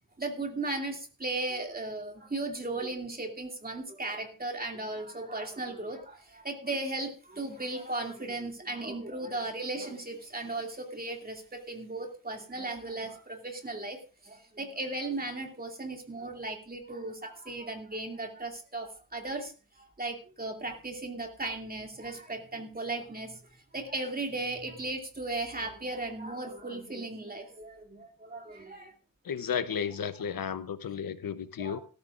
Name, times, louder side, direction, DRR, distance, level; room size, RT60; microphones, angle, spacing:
voice 1, 0.2-23.4 23.7-28.9 31.6-31.8, right 2 dB, 25° right, 2 dB, 2.5 m, -36 dB
voice 2, 29.2-31.8, left 7 dB, 80° left, 13 dB, 0.8 m, -33 dB
17.5 x 13.5 x 2.5 m, 0.36 s
wide cardioid pair, 130°, 34 cm